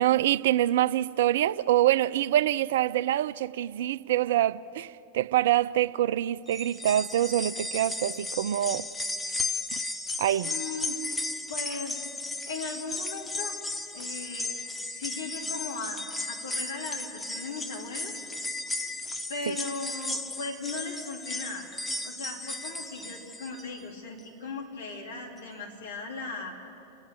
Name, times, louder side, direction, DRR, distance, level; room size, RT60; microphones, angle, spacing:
voice 1, 0.0-8.8 10.2-10.5 19.5-19.6, right 13 dB, 55° right, 0.4 m, -25 dB
sound 1, 6.5-23.8 24.2-24.3 25.4-25.5, left 2 dB, 10° left, 0.7 m, -35 dB
voice 2, 10.4-11.0 11.5-12.0 12.5-13.6 13.9-14.6 14.9-18.2 19.3-21.7 22.0-26.5, left 3 dB, 65° left, 3.5 m, -38 dB
29.5 x 10.0 x 8.6 m
figure-of-eight pair, 90°, 0 cm